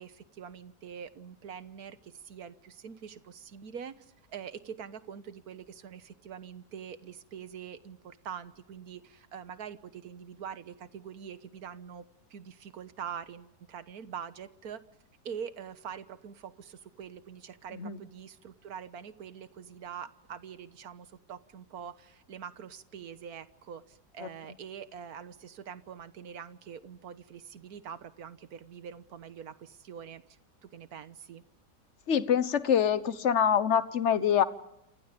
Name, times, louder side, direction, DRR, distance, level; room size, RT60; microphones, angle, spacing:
voice 1, 0.0-14.8 15.2-31.4, right 7 dB, 65° right, 13 dB, 1.6 m, -44 dB
voice 2, 32.1-34.4, left 8 dB, 45° left, 13 dB, 1.3 m, -25 dB
28.0 x 27.5 x 5.2 m, 0.86 s
omnidirectional pair, 1.8 m